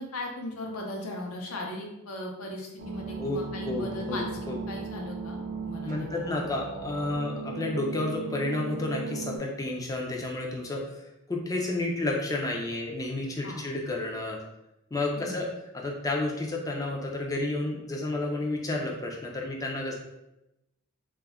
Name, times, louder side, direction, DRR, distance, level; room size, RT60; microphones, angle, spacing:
voice 1, 0.0-4.3 4.7-6.2 13.4-13.6 15.1-15.4, left 1 dB, 70° left, 0 dB, 0.6 m, -38 dB
sound 1, 2.8-9.4, right 4 dB, 40° right, 0.5 m, -37 dB
voice 2, 3.6-4.6 5.8-10.8 11.3-14.4 14.9-15.5 15.7-19.9, left 2 dB, 15° left, -1 dB, 0.3 m, -31 dB
2.2 x 2.1 x 3.4 m, 0.91 s
head